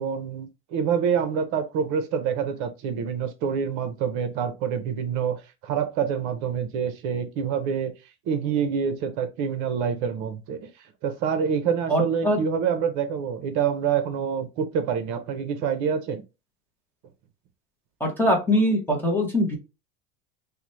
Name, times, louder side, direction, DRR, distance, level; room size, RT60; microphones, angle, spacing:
voice 1, 0.0-5.4 5.6-7.9 8.3-10.7 11.0-16.2, right 7 dB, 50° right, 0.7 m, -26 dB
voice 2, 11.9-12.4 18.0-19.6, equal, 5° left, 0.7 m, -22 dB
4.0 x 2.1 x 3.0 m
supercardioid pair, 150°, 37 cm